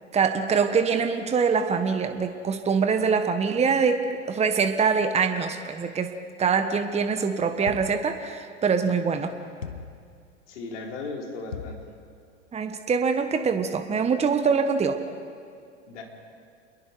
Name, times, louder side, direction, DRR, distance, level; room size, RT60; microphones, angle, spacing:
voice 1, 0.1-4.0 4.3-6.1 6.4-9.3 12.5-15.0, right 5 dB, 15° right, 7 dB, 1.3 m, -24 dB
sound 1, 7.7-8.1 9.6-10.0 11.5-11.9, left 6 dB, 90° left, 1.4 m, -37 dB
voice 2, 8.8-9.2 10.5-11.8 15.8-16.0, left 3 dB, 70° left, 0 dB, 4.6 m, -37 dB
29.0 x 22.0 x 4.7 m, 2.3 s
hypercardioid pair, 95°, 37 cm